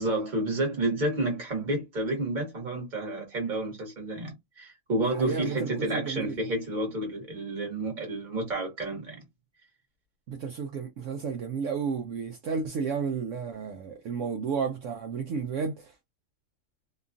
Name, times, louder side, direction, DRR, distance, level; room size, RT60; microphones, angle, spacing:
voice 1, 0.0-9.2, right 2 dB, 35° right, 1.3 m, -30 dB
voice 2, 5.1-6.4 10.3-15.9, right 5 dB, 70° right, 0.9 m, -32 dB
2.9 x 2.3 x 2.5 m
omnidirectional pair, 1.4 m